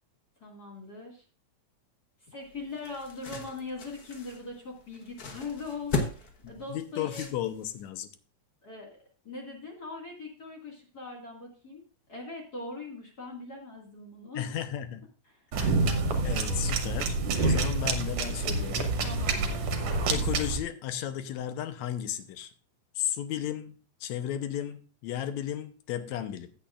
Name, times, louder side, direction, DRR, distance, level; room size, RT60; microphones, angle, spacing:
voice 1, 0.4-1.2 2.3-7.3 8.6-9.0 9.2-11.8 12.1-14.5 15.3-15.5 19.0-19.6, left 3 dB, 35° left, -1 dB, 2.3 m, -41 dB
sound 1, 2.4-7.9, left 3 dB, 50° left, 1.1 m, -37 dB
voice 2, 6.4-8.1 14.4-15.0 15.5-15.8 16.2-17.2 17.4-18.9 20.1-22.5 23.0-26.5, left 10 dB, 80° left, 10 dB, 2.1 m, -34 dB
sound 2, 15.5-20.6, right 3 dB, 65° right, 2.2 m, -27 dB
15.0 x 8.7 x 2.4 m, 0.36 s
omnidirectional pair, 3.3 m